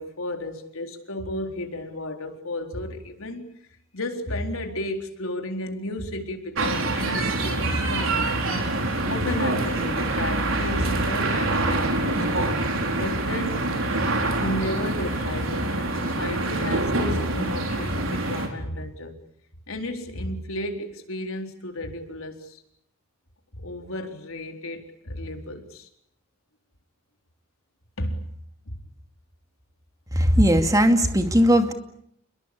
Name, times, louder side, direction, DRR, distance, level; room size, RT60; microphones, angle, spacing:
voice 1, 0.0-3.5 3.9-8.3 9.0-12.5 13.0-13.6 14.4-19.1 19.7-22.6 23.5-25.9 28.0-28.2 28.7-28.8, left 1 dB, 85° left, 4 dB, 4.1 m, -33 dB
sound 1, 6.6-18.5, right 2 dB, 70° right, 4.9 m, -25 dB
voice 2, 30.1-31.7, equal, 15° right, 6 dB, 2.4 m, -18 dB
29.5 x 21.5 x 8.6 m, 0.73 s
head